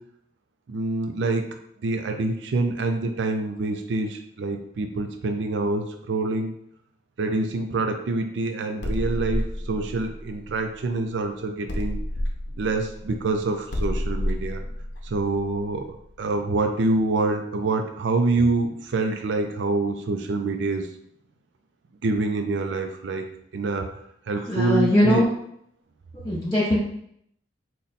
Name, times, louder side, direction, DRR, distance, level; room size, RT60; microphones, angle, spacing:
voice 1, 0.7-1.5 1.8-6.5 7.2-12.0 12.6-14.6 15.0-20.9 22.0-23.3 23.5-23.9 24.3-25.2, right 3 dB, 80° right, 5 dB, 0.4 m, -26 dB
sound 1, 8.8-11.2 11.7-16.3, left 1 dB, 85° left, 0.7 m, -30 dB
voice 2, 24.3-25.3 26.2-26.8, left 1 dB, 20° left, -9 dB, 0.7 m, -21 dB
3.9 x 2.2 x 4.0 m, 0.70 s
head